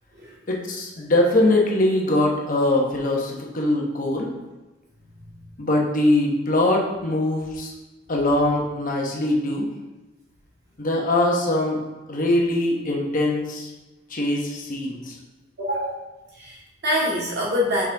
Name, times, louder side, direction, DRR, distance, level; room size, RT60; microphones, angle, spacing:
voice 1, 0.5-4.3 5.6-7.7 8.1-9.7 10.8-11.8 12.1-13.7 14.1-15.1, left 1 dB, 45° left, 0 dB, 1.1 m, -22 dB
voice 2, 15.6-16.0 16.4-17.8, left 1 dB, 55° right, -6 dB, 2.1 m, -25 dB
6.5 x 5.0 x 3.4 m, 1.1 s
head